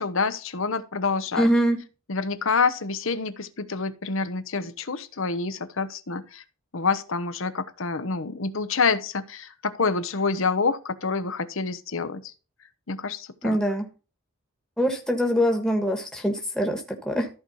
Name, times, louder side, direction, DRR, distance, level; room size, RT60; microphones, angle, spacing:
voice 1, 0.0-1.5 2.1-6.4 6.7-12.3 12.9-13.6, left 4 dB, 65° left, 1.0 m, -27 dB
voice 2, 1.4-1.8 13.4-13.8 14.8-17.3, equal, 5° left, 1.4 m, -23 dB
14.0 x 4.8 x 4.1 m
head